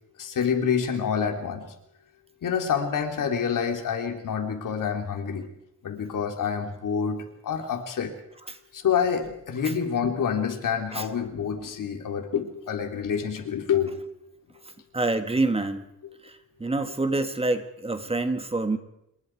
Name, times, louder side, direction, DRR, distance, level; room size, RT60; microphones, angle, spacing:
voice 1, 0.2-1.6 2.4-5.5 5.8-8.1 8.7-13.9, left 7 dB, 70° left, 4 dB, 3.5 m, -27 dB
voice 2, 14.9-15.8 16.2-16.3 16.6-18.8, right 2 dB, 20° right, 9 dB, 1.6 m, -26 dB
27.0 x 21.5 x 4.8 m, 0.81 s
wide cardioid pair, 130°, 33 cm